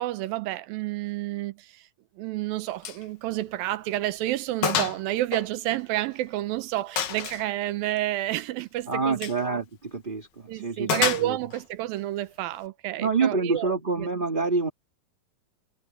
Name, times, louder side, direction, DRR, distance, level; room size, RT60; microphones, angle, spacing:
voice 1, 0.0-1.8 2.2-9.6 10.5-14.1, right 15 dB, 90° right, 2.6 m, -30 dB
Gunshot gunfire, 2.8-3.1 3.4-3.5 4.0-4.1 4.6-5.0 5.3-6.3 7.0-7.5 9.1-9.4 10.9-11.6, left 9 dB, 75° left, 3.4 m, -28 dB
voice 2, 8.9-11.4 13.0-14.7, right 4 dB, 20° right, 1.5 m, -27 dB
omnidirectional pair, 4.0 m